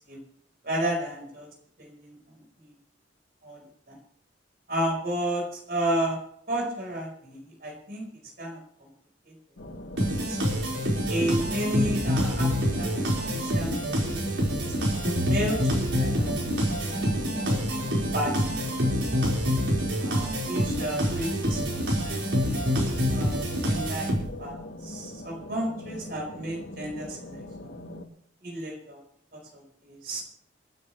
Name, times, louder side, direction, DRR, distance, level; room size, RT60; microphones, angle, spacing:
voice 1, 0.6-1.5 1.8-2.7 3.4-4.0 4.7-6.2 6.5-8.1 8.4-8.9 9.2-9.3 10.0-10.4 11.1-12.5 12.8-14.5 15.2-17.6 18.1-18.7 20.0-22.2 23.1-23.3 23.6-27.7 28.4-29.0 29.3-30.2, right 1 dB, 55° right, 0 dB, 5.0 m, -33 dB
sound 1, 9.6-28.0, left 1 dB, 90° left, 1.8 m, -40 dB
sound 2, 10.0-24.5, equal, 85° right, 5.1 m, -26 dB
28.5 x 9.7 x 3.4 m, 0.68 s
head